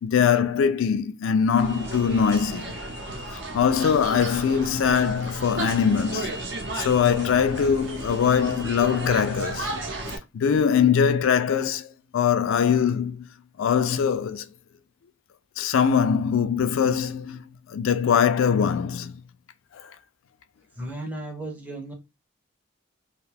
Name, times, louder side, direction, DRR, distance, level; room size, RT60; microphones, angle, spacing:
voice 1, 0.0-2.7 3.3-6.3 6.7-9.7 10.3-13.3 13.6-14.5 15.6-17.4 17.7-19.1 19.7-19.9, left 7 dB, 80° left, 0.3 m, -22 dB
sound 1, 1.5-10.2, right 2 dB, 65° right, 0.7 m, -34 dB
voice 2, 20.8-21.9, right 1 dB, 10° right, 0.5 m, -35 dB
2.5 x 2.2 x 3.3 m
head